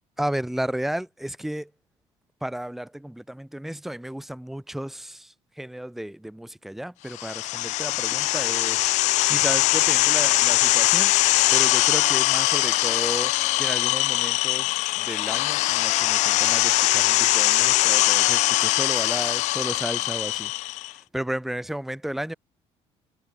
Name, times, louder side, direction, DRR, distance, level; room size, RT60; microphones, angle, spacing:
voice 1, 0.2-1.7 2.4-11.1 11.5-13.3 13.6-20.5 20.8-22.3, right 1 dB, ahead, 1.6 m, -33 dB
sound 1, 7.1-20.9, left 19 dB, 75° left, 0.4 m, -22 dB
cardioid pair, 150°, 12 cm